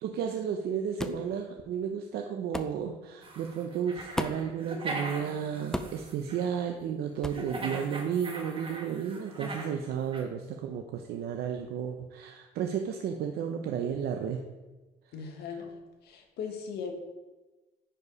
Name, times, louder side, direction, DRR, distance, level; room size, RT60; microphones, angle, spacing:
voice 1, 0.0-14.4, right 8 dB, 70° right, 3 dB, 0.7 m, -33 dB
sound 1, 1.0-1.3 2.5-2.8 4.2-4.5 5.7-6.0 7.2-7.5, left 1 dB, 5° left, 0.5 m, -33 dB
sound 2, 3.2-6.4 7.3-9.8 10.1-10.2, right 2 dB, 30° right, 1.5 m, -40 dB
voice 2, 15.1-16.9, left 6 dB, 75° left, 4 dB, 1.5 m, -39 dB
10.0 x 4.7 x 4.8 m, 1.2 s
cardioid pair, 110°, 17 cm